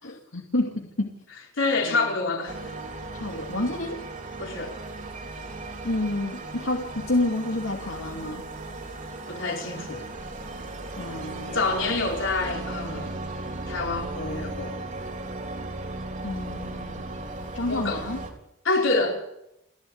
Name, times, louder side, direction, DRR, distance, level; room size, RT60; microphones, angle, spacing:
voice 1, 0.0-1.1 1.8-2.1 3.1-4.0 5.8-8.4 11.0-11.6 16.2-17.1 17.5-18.2, left 1 dB, 85° left, 2.5 m, -29 dB
voice 2, 1.6-2.6 4.4-4.7 9.3-10.1 11.5-13.2 13.7-14.8 17.7-18.0 18.6-19.2, left 3 dB, 70° left, 4.6 m, -27 dB
sound 1, 2.5-18.3, right 2 dB, 40° right, 3.7 m, -36 dB
29.5 x 11.5 x 8.7 m
head